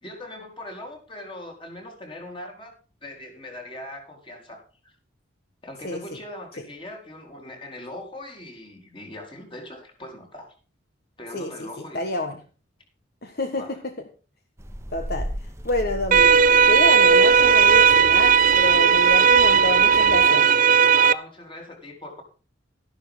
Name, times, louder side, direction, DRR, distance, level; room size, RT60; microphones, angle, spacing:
voice 1, 0.0-2.7 3.0-4.9 5.6-10.5 11.2-12.0 13.5-13.8 20.9-22.2, left 1 dB, 25° left, 2 dB, 4.0 m, -40 dB
voice 2, 11.9-12.4 13.2-13.6 14.9-15.3 15.6-16.4 16.7-20.5, left 1 dB, 50° left, 5 dB, 1.5 m, -27 dB
sound 1, 14.6-20.3, equal, 15° right, 1.3 m, -36 dB
sound 2, 16.1-21.1, right 7 dB, 45° right, 0.5 m, -16 dB
13.0 x 11.5 x 3.8 m, 0.36 s
head